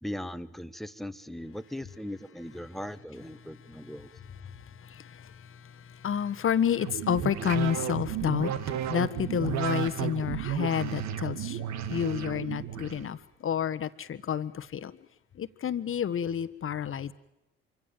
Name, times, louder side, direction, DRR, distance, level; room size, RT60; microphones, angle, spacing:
voice 1, 0.0-4.1, left 1 dB, ahead, 1.4 m, -39 dB
voice 2, 4.4-11.6 11.9-14.9 15.3-17.1, left 8 dB, 40° left, 1.4 m, -30 dB
sound 1, 6.7-13.1, right 11 dB, 60° right, 1.6 m, -33 dB
26.5 x 25.0 x 7.4 m
hypercardioid pair, 55°, 31 cm